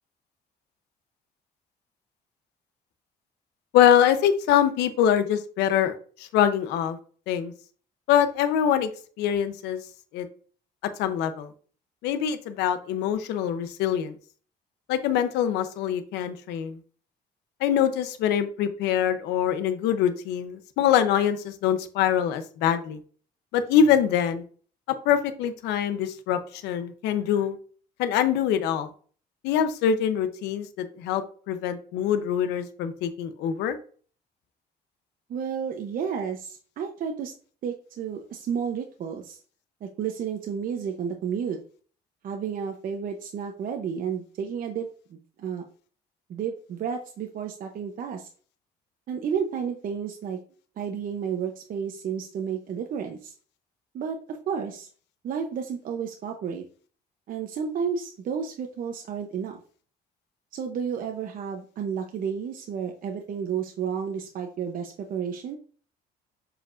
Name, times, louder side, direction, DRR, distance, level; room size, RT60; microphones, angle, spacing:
voice 1, 3.7-7.0 7.3-7.5 8.1-8.9 9.2-9.8 10.1-10.3 11.0-11.5 12.0-14.2 14.9-16.8 17.6-23.0 23.5-24.4 25.0-27.6 28.0-28.9 29.4-33.8, left 9 dB, 85° left, 10 dB, 0.8 m, -24 dB
voice 2, 35.3-37.3 37.6-39.4 39.8-41.6 42.2-45.6 46.3-48.3 49.1-50.4 50.8-53.3 53.9-54.9 55.2-56.6 57.3-59.6 60.5-65.6, right 7 dB, 55° right, 3 dB, 0.8 m, -31 dB
7.5 x 5.0 x 2.6 m, 0.43 s
cardioid pair, 110°, 17 cm